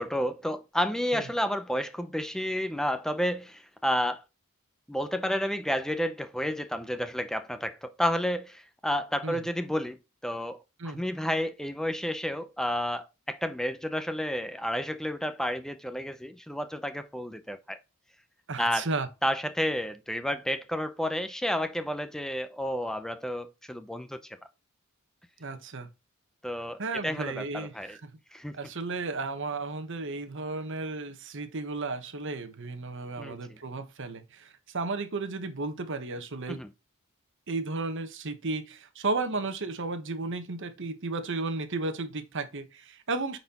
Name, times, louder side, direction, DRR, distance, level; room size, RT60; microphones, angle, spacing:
voice 1, 0.0-4.2 4.9-17.8 18.6-18.9 19.2-24.4 26.4-28.0 28.3-28.5 33.2-33.6 36.5-36.7, equal, ahead, 0.6 m, -31 dB
voice 2, 18.5-19.1 25.4-25.9 26.8-28.0 28.5-36.6 37.5-43.4, right 3 dB, 60° right, 1.1 m, -34 dB
9.0 x 4.2 x 2.9 m
head